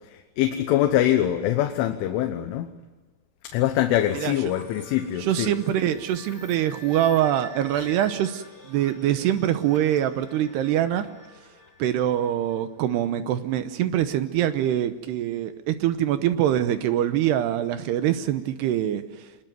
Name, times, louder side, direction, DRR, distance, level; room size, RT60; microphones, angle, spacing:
voice 1, 0.0-2.7 3.4-5.5, left 12 dB, 80° left, 6 dB, 3.6 m, -24 dB
sound 1, 4.0-12.6, left 3 dB, 20° left, 2.0 m, -45 dB
voice 2, 5.2-11.1 11.8-19.0, right 11 dB, 75° right, 10 dB, 2.6 m, -24 dB
25.0 x 20.5 x 9.2 m, 1.3 s
omnidirectional pair, 5.6 m